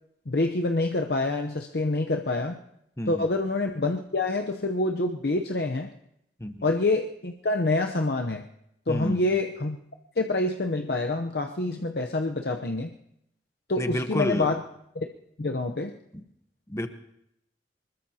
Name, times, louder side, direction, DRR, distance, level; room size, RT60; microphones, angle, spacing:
voice 1, 0.3-2.6 3.1-5.9 6.6-8.4 8.9-9.8 10.2-12.9 13.7-14.6 15.0-15.1 15.4-15.9, left 2 dB, 60° left, 4 dB, 0.7 m, -26 dB
voice 2, 8.9-9.3 13.8-14.6 16.1-16.2 16.7-16.9, equal, 15° left, 8 dB, 0.9 m, -30 dB
24.5 x 20.5 x 2.8 m, 0.79 s
head